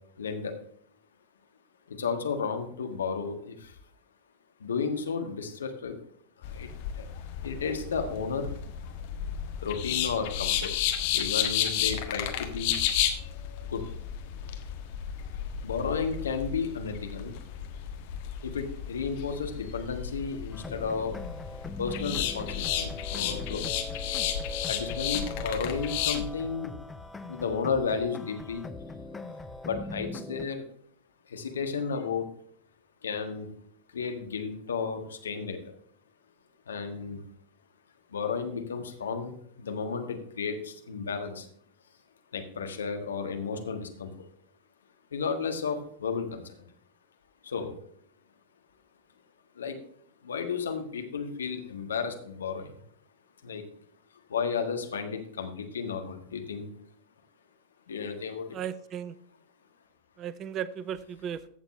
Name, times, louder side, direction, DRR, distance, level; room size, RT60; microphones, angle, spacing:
voice 1, 0.2-0.6 1.9-3.7 4.6-5.9 6.5-6.7 7.0-7.1 7.4-8.5 9.6-10.7 11.1-12.8 13.7-13.8 15.6-17.3 18.4-21.2 21.8-23.6 24.0-24.3 24.7-26.7 27.3-28.6 29.6-30.6 31.3-32.3 33.0-33.5 33.9-35.6 36.7-37.2 38.1-39.3 39.6-41.5 42.3-44.1 45.1-46.5 47.4-47.7 49.6-49.8 50.2-52.7 53.4-53.6 54.3-56.7 57.9-58.5, left 5 dB, 70° left, 1.5 m, -33 dB
sound 1, 6.4-26.3, left 10 dB, 50° left, 1.4 m, -33 dB
sound 2, 20.5-30.5, left 2 dB, 10° left, 0.8 m, -40 dB
voice 2, 58.5-59.2 60.2-61.5, right 9 dB, 35° right, 0.6 m, -36 dB
15.0 x 7.0 x 3.2 m
figure-of-eight pair, 90°, 0 cm